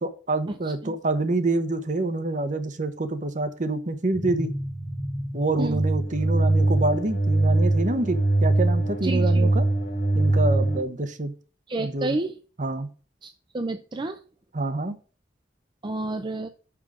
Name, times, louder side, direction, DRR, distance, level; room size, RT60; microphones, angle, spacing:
voice 1, 0.0-4.5 5.3-9.6 10.1-11.3 11.8-12.1 12.6-12.9 14.5-15.0, right 2 dB, 45° right, 10 dB, 0.9 m, -27 dB
sound 1, 4.1-10.8, right 2 dB, 55° left, 1.9 m, -23 dB
voice 2, 9.0-9.5 11.7-12.4 13.2-14.2 15.8-16.5, right 2 dB, 25° right, 8 dB, 0.5 m, -30 dB
6.2 x 6.1 x 4.8 m, 0.38 s
head